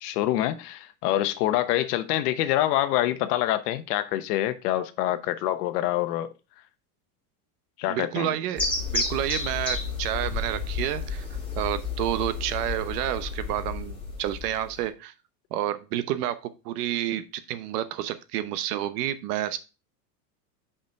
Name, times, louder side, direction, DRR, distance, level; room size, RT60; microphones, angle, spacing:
voice 1, 0.0-6.3 7.8-8.3, left 13 dB, 75° left, 1.0 m, -26 dB
voice 2, 7.9-8.7 8.9-11.2 11.6-15.1 15.5-19.6, right 12 dB, 75° right, 1.0 m, -29 dB
sound 1, 8.6-14.9, left 4 dB, 10° left, 2.7 m, -31 dB
5.3 x 5.0 x 4.6 m
supercardioid pair, 140°, 47 cm